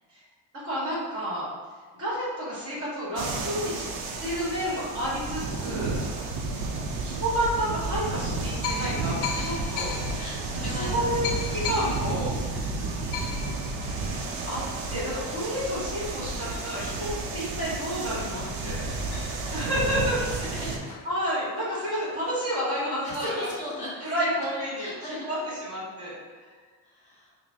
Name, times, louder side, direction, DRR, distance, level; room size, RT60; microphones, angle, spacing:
voice 1, 0.6-1.5 2.0-3.9 4.2-6.0 7.0-10.0 10.7-12.3 14.5-14.6 14.9-18.9 19.5-20.2 21.0-23.3 24.0-26.1, equal, 30° right, -7 dB, 1.5 m, -30 dB
sound 1, 3.2-20.8, right 3 dB, 90° right, 0.6 m, -32 dB
voice 2, 3.8-4.3 9.2-9.7 10.1-11.1 18.2-18.9 19.9-20.9 23.0-24.1 24.5-25.3 26.8-27.3, left 1 dB, 15° left, -8 dB, 1.2 m, -39 dB
sound 2, 8.6-17.8 18.2-18.3 18.5-23.1, left 5 dB, 65° left, 0.5 m, -39 dB
4.8 x 2.1 x 2.7 m, 1.5 s
cardioid pair, 145°, 44 cm